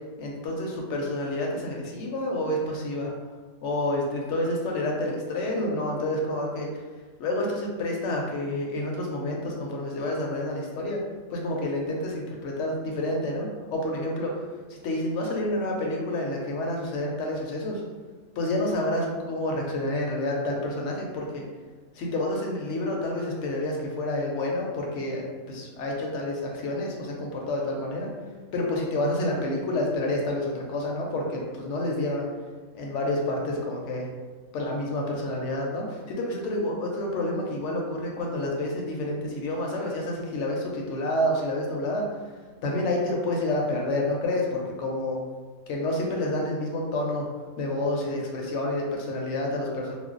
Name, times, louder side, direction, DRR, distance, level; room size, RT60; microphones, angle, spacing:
voice 1, 0.2-3.1 3.6-6.7 7.2-11.0 11.3-14.4 14.7-17.8 18.4-21.5 21.9-28.1 28.5-32.3 32.7-34.1 34.5-42.1 42.6-45.2 45.7-47.3 47.6-49.9, left 1 dB, 65° left, -1 dB, 0.8 m, -29 dB
2.4 x 2.0 x 3.7 m, 1.4 s
omnidirectional pair, 1.5 m